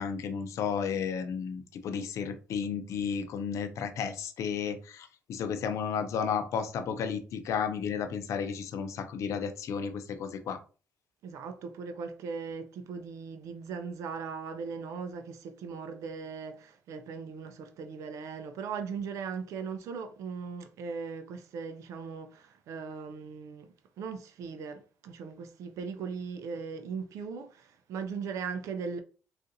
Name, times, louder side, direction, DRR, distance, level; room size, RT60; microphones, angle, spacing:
voice 1, 0.0-10.6, left 7 dB, 70° left, 0.5 m, -33 dB
voice 2, 11.2-29.0, right 5 dB, 75° right, 0.4 m, -39 dB
3.9 x 2.4 x 2.6 m
cardioid pair, 90°, 5 cm